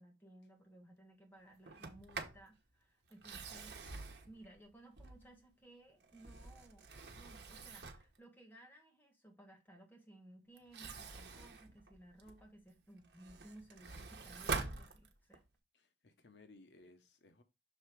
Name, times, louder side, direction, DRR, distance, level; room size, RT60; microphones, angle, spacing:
voice 1, 0.0-6.9 7.2-15.4, right 1 dB, 10° left, 1.6 m, -59 dB
Sliding door, 1.7-2.5 3.1-5.5 6.0-8.2 10.6-12.5 13.0-15.5, right 4 dB, 75° right, 1.1 m, -46 dB
voice 2, 15.8-17.4, left 3 dB, 85° left, 0.9 m, -61 dB
6.4 x 3.6 x 4.6 m
head